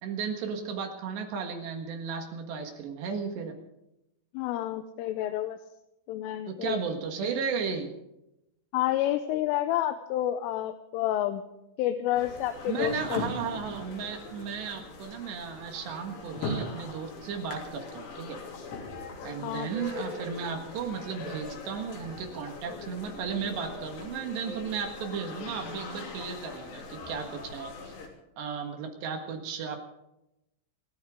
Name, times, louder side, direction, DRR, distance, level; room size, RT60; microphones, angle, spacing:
voice 1, 0.0-3.5 6.5-7.9 12.7-18.4 19.2-28.0 28.4-29.8, right 6 dB, 65° right, 4 dB, 3.5 m, -35 dB
voice 2, 4.3-5.6 6.1-6.8 8.7-11.4 11.8-13.2 19.4-19.7, left 13 dB, 85° left, 8 dB, 3.3 m, -29 dB
sound 1, 12.2-28.1, left 3 dB, 60° left, 4.8 m, -40 dB
27.5 x 13.5 x 3.7 m, 0.88 s
omnidirectional pair, 5.7 m